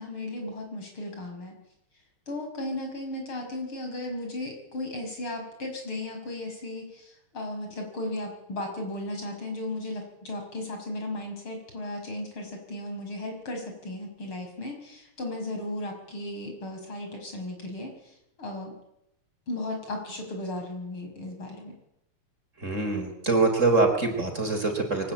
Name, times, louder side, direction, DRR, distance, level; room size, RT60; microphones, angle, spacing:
voice 1, 0.0-1.5 2.3-18.7 19.5-21.8, left 1 dB, 70° left, 3 dB, 6.8 m, -35 dB
voice 2, 22.6-25.1, right 3 dB, 35° right, 5 dB, 4.2 m, -24 dB
23.5 x 19.0 x 8.9 m, 0.81 s
omnidirectional pair, 2.4 m